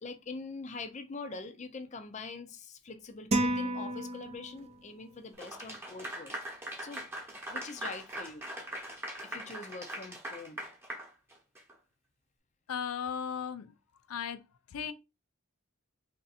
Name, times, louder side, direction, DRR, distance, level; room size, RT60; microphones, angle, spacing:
voice 1, 0.0-6.3 6.8-7.1 7.5-8.5 9.2-10.6, left 4 dB, 35° left, 0.5 m, -43 dB
sound 1, 3.3-4.8, right 1 dB, 30° right, 0.5 m, -31 dB
Clapping / Applause, 5.4-11.7, right 1 dB, 10° right, 1.0 m, -41 dB
voice 2, 12.7-13.7 14.1-14.4 14.7-14.9, left 7 dB, 90° left, 0.4 m, -36 dB
3.4 x 2.6 x 4.1 m
head